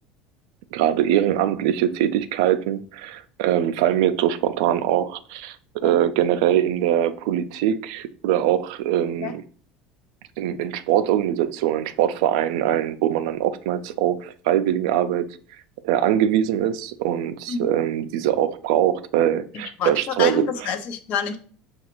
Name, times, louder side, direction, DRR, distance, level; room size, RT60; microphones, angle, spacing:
voice 1, 0.7-9.4 10.4-15.4 15.8-20.7, right 11 dB, 85° right, 0.3 m, -22 dB
voice 2, 19.5-21.4, left 6 dB, 50° left, 0.6 m, -28 dB
5.7 x 2.3 x 2.9 m
cardioid pair, 135°, 3 cm